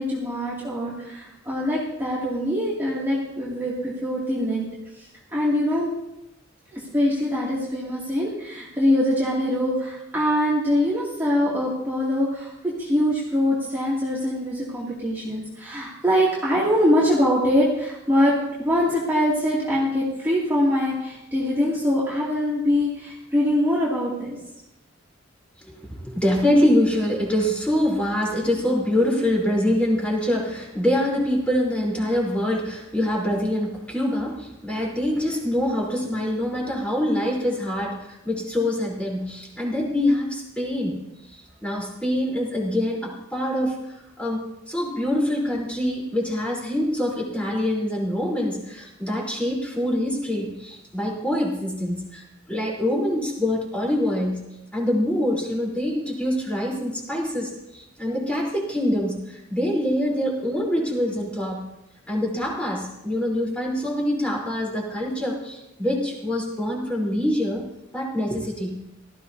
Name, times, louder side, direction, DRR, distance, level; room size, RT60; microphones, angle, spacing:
voice 1, 0.0-4.7 4.9-5.9 6.7-24.4, left 1 dB, 10° right, -8 dB, 2.6 m, -23 dB
voice 2, 25.6-41.0 41.3-54.4 54.7-61.6 62.1-67.6 67.9-68.7, left 1 dB, 5° left, -4 dB, 3.9 m, -25 dB
18.0 x 14.0 x 2.8 m, 0.89 s
head